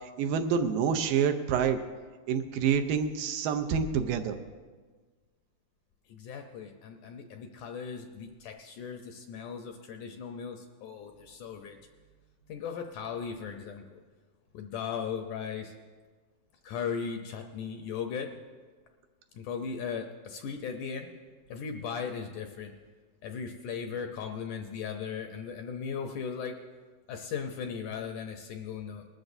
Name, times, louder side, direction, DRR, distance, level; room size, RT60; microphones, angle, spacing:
voice 1, 0.2-1.8 2.3-4.4, right 7 dB, 80° right, 6 dB, 2.3 m, -27 dB
voice 2, 6.1-11.8 12.5-14.0 14.5-15.7 16.6-18.3 19.3-21.1 21.5-22.7 23.2-26.6 27.1-29.1, left 6 dB, 75° left, 4 dB, 1.9 m, -37 dB
20.5 x 13.0 x 2.6 m, 1.4 s
omnidirectional pair, 4.1 m